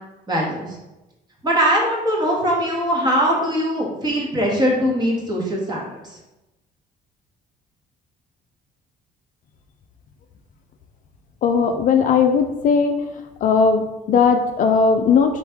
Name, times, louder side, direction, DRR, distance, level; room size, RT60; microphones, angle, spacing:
voice 1, 0.3-0.8 1.4-6.0, equal, 25° right, -2 dB, 1.3 m, -21 dB
voice 2, 11.4-12.9 13.4-15.4, left 5 dB, 50° left, 5 dB, 0.4 m, -17 dB
4.2 x 3.2 x 3.5 m, 1.0 s
cardioid pair, 110°, 17 cm